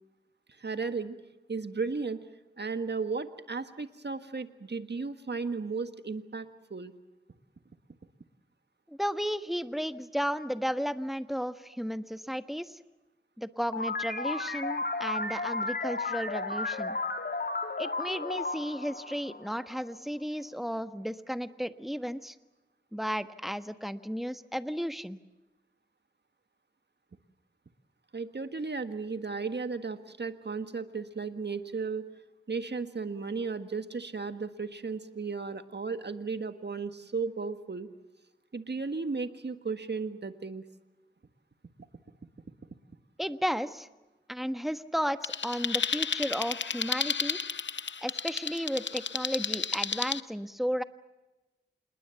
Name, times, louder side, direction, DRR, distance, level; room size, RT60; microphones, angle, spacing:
voice 1, 0.6-1.2 1.5-2.2 2.6-6.9 28.1-32.0 32.5-37.9 38.5-40.6, right 4 dB, 70° right, 9 dB, 1.6 m, -35 dB
voice 2, 8.9-12.8 13.4-17.0 17.8-22.3 22.9-25.2 43.2-43.9 44.3-47.4 48.0-50.8, equal, ahead, 10 dB, 1.4 m, -34 dB
sound 1, 13.7-20.0, left 3 dB, 65° left, 2.1 m, -33 dB
sound 2, 45.2-50.2, left 6 dB, 90° left, 0.7 m, -32 dB
27.5 x 20.5 x 7.1 m, 1.1 s
wide cardioid pair, 45°, 18 cm